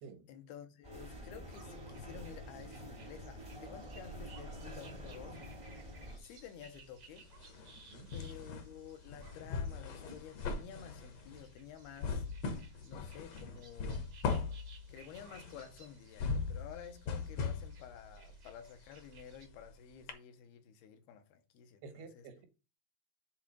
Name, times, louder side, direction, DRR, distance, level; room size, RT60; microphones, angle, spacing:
voice 1, 0.3-5.4 6.2-7.3 8.1-12.3 12.8-14.1 14.9-22.3, left 9 dB, 80° left, 2.8 m, -52 dB
sound 1, 0.8-6.2, equal, 25° right, 0.7 m, -47 dB
sound 2, 1.4-19.5, right 4 dB, 65° right, 1.1 m, -62 dB
sound 3, 4.5-5.6 5.9-19.7 20.1-20.2, left 5 dB, 60° left, 1.8 m, -40 dB
voice 2, 7.8-8.1 21.8-22.5, right 5 dB, 80° right, 3.2 m, -51 dB
8.0 x 3.8 x 6.0 m
omnidirectional pair, 4.6 m